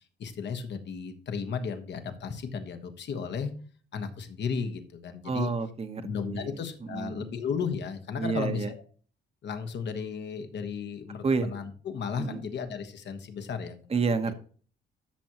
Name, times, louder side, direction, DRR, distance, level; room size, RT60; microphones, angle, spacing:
voice 1, 0.2-3.5 3.9-5.5 6.0-8.8 9.4-13.9, left 6 dB, 60° left, 8 dB, 1.4 m, -34 dB
voice 2, 5.2-6.6 6.9-7.4 8.2-8.7 11.2-11.5 12.2-12.4 13.9-14.3, right 4 dB, 30° right, 9 dB, 1.1 m, -29 dB
13.0 x 6.2 x 3.0 m, 0.43 s
cardioid pair, 90°, 20 cm